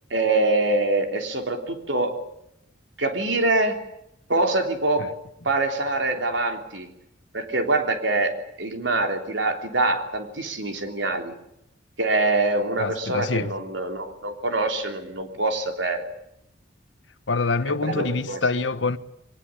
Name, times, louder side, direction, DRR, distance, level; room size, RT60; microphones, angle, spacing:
voice 1, 0.1-2.2 3.0-3.8 4.3-5.1 5.4-6.9 7.3-11.3 12.0-16.0 17.8-18.4, right 2 dB, 75° right, 3.4 m, -24 dB
voice 2, 12.8-13.5 17.3-19.0, left 3 dB, 80° left, 1.2 m, -25 dB
23.0 x 19.5 x 9.9 m
head